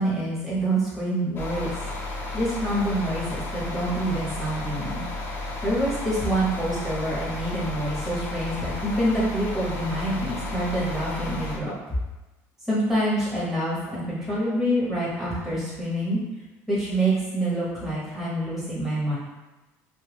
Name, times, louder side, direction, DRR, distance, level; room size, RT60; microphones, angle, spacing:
voice 1, 0.0-1.7 2.3-5.0 5.6-12.0 12.7-16.2 16.7-19.2, right 1 dB, 5° right, -9 dB, 1.0 m, -26 dB
sound 1, 1.4-11.6, left 2 dB, 35° left, 0.6 m, -33 dB
2.3 x 2.1 x 3.3 m, 1.1 s
cardioid pair, 115°, 7 cm